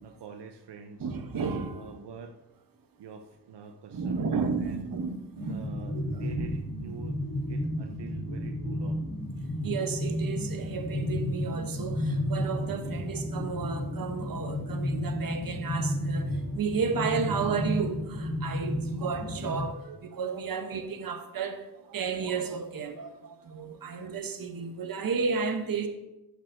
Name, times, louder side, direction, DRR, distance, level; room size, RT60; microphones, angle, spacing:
voice 1, 0.0-1.1 1.7-2.4 3.0-4.8 5.4-9.0 18.9-19.0, right 6 dB, 85° right, 0.7 m, -46 dB
voice 2, 1.0-1.9 3.9-5.7 5.9-6.5 9.6-21.6 21.9-25.9, right 5 dB, 55° right, 0.9 m, -32 dB
sound 1, 5.4-19.7, left 1 dB, 25° left, 0.9 m, -32 dB
sound 2, 12.1-17.1, right 1 dB, 25° right, 0.8 m, -52 dB
11.0 x 8.1 x 2.6 m
wide cardioid pair, 155°, 40 cm